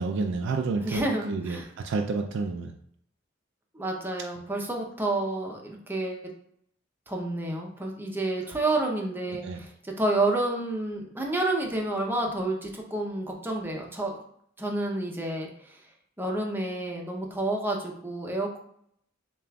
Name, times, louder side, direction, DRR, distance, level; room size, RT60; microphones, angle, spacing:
voice 1, 0.0-1.6 1.8-2.7 9.4-9.6, right 4 dB, 65° right, 4 dB, 0.3 m, -29 dB
voice 2, 0.8-1.7 3.7-6.3 7.1-14.1 14.6-15.8 16.2-18.6, right 2 dB, 10° right, 0 dB, 0.6 m, -29 dB
6.8 x 2.4 x 2.3 m, 0.68 s
head